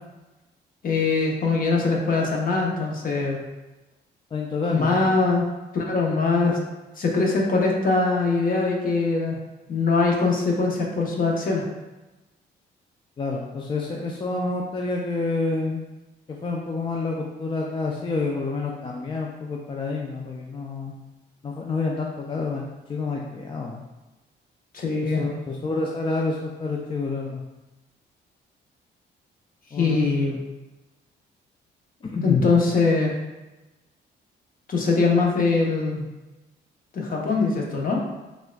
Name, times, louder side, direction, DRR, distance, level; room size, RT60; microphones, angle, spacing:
voice 1, 0.8-3.4 4.7-5.5 5.7-6.6 7.0-9.4 9.7-11.7 24.7-25.2 29.7-30.4 32.2-33.1 34.7-36.0 36.9-38.0, left 3 dB, 45° left, -1 dB, 0.7 m, -22 dB
voice 2, 4.3-5.1 13.2-15.8 16.3-20.9 21.4-22.6 22.9-23.8 25.0-27.4 29.7-30.0 30.2-30.4 32.1-32.5, left 3 dB, 25° left, -1 dB, 0.3 m, -28 dB
4.0 x 2.3 x 2.2 m, 1.1 s
cardioid pair, 90°, 20 cm